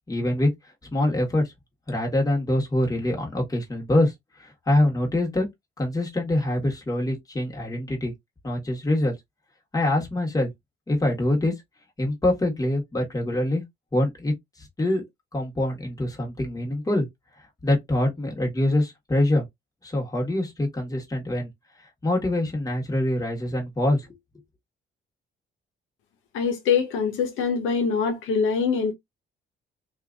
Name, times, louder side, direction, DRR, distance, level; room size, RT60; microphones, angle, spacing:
voice 1, 0.1-0.5 0.9-1.5 1.9-5.5 5.8-8.1 8.4-9.1 9.7-10.5 10.9-11.5 12.0-13.6 13.9-15.0 15.3-17.1 17.6-19.5 19.8-21.5 22.0-24.2, left 1 dB, 20° left, 1.3 m, -24 dB
voice 2, 26.3-28.9, left 6 dB, 90° left, 0.8 m, -24 dB
2.7 x 2.5 x 2.3 m
cardioid pair, 90°, 20 cm